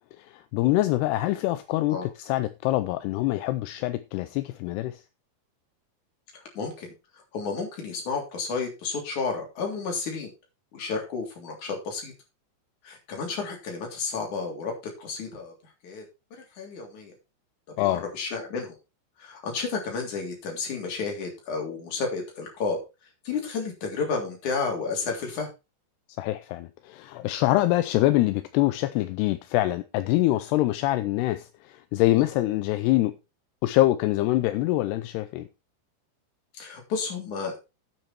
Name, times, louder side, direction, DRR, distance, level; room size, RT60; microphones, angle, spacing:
voice 1, 0.2-5.0 17.8-18.0 26.2-33.1 33.6-35.5, left 16 dB, 80° left, 2.5 m, -25 dB
voice 2, 6.3-10.3 10.7-12.1 12.8-15.5 15.8-16.0 16.3-17.1 17.8-18.7 19.2-22.8 23.2-25.5 32.1-32.2 36.5-37.6, left 4 dB, 45° left, 4.4 m, -32 dB
10.0 x 8.9 x 4.4 m
omnidirectional pair, 5.2 m